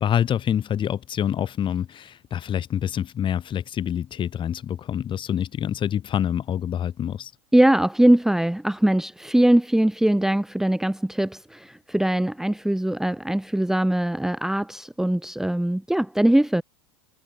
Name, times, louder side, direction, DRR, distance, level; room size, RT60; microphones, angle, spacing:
voice 1, 0.0-7.3, left 9 dB, 35° left, 5.6 m, -26 dB
voice 2, 7.5-16.6, right 1 dB, 5° right, 1.4 m, -21 dB
hypercardioid pair, 100°, 15 cm